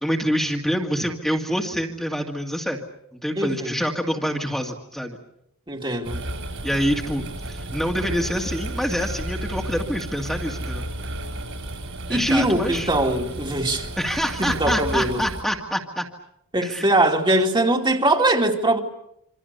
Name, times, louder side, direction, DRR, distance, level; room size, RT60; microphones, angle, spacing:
voice 1, 0.0-2.8 3.1-5.2 6.6-10.9 12.1-12.9 14.0-16.0 16.6-16.9 17.3-17.4, equal, ahead, 2.3 m, -26 dB
voice 2, 3.4-3.7 5.7-6.2 12.1-13.9 14.4-15.2 16.5-18.8, right 1 dB, 20° right, 2.7 m, -21 dB
sound 1, 6.0-15.4, right 1 dB, 65° right, 7.3 m, -32 dB
27.5 x 26.0 x 6.9 m
head